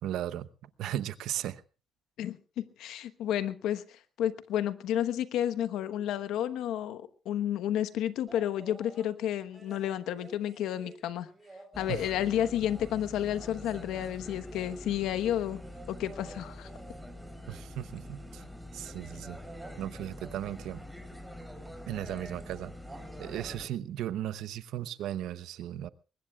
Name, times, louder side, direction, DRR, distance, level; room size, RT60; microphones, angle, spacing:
voice 1, 0.0-1.6 11.9-12.0 17.5-19.4 19.8-20.8 21.9-22.7 23.2-25.9, right 12 dB, 85° right, 0.8 m, -36 dB
voice 2, 2.2-11.3 11.8-15.6 15.9-16.7, left 11 dB, 85° left, 1.0 m, -31 dB
sound 1, 8.3-9.2 9.5-13.1 13.6-18.4 19.3-19.8 21.6-21.8 22.1-22.5 22.8-23.5 24.9-25.0, right 3 dB, 20° right, 4.1 m, -52 dB
sound 2, 11.7-23.7, left 1 dB, ahead, 3.7 m, -45 dB
23.0 x 20.5 x 2.4 m
cardioid pair, 90°, 0 cm